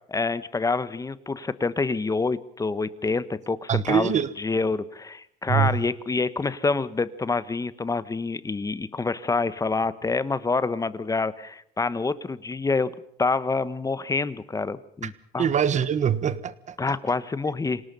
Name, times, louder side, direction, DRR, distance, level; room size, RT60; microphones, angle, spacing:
voice 1, 0.1-12.9 13.2-15.5 16.8-17.8, left 3 dB, 20° left, 1.2 m, -27 dB
voice 2, 3.7-4.3 5.5-5.8 15.0-15.1 15.4-16.8, right 8 dB, 45° right, 1.4 m, -23 dB
27.0 x 18.0 x 5.5 m
cardioid pair, 110°, 17 cm